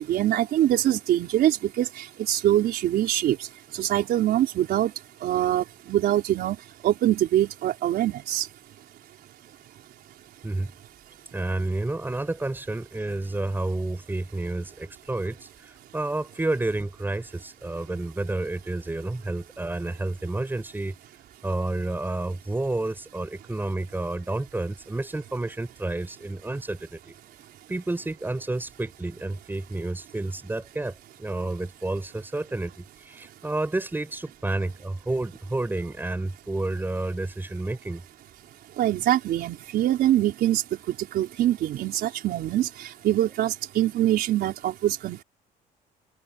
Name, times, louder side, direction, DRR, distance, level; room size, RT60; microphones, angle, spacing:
voice 1, 0.1-3.5 3.7-4.9 5.2-6.6 6.8-8.5 38.8-40.6 41.1-45.2, right 12 dB, 70° right, 4.5 m, -24 dB
voice 2, 11.3-20.9 21.4-27.1 27.7-30.9 31.2-38.0, right 2 dB, 10° right, 7.6 m, -30 dB
open air
cardioid pair, 110°, 17 cm